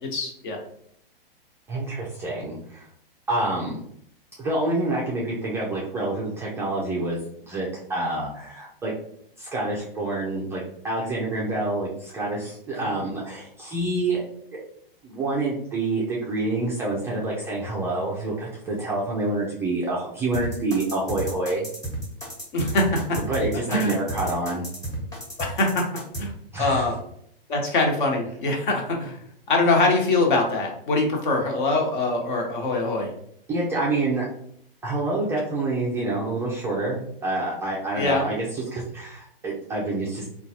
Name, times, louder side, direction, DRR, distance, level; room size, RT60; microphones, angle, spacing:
voice 1, 0.0-0.6 22.5-23.2 23.7-23.9 25.4-25.9 26.2-26.3 26.6-27.0 27.5-29.2 29.5-33.1 38.0-38.2, left 2 dB, 55° left, 1 dB, 1.1 m, -23 dB
voice 2, 1.7-2.8 3.3-3.8 4.4-7.2 7.5-8.9 9.4-14.2 14.5-14.6 15.0-21.7 23.3-24.7 26.5-26.9 33.5-34.3 34.8-40.3, right 2 dB, 10° right, -5 dB, 0.3 m, -27 dB
sound 1, 20.3-26.2, right 1 dB, 10° left, 0.9 m, -32 dB
3.8 x 2.3 x 2.8 m, 0.68 s
hypercardioid pair, 120°, 29 cm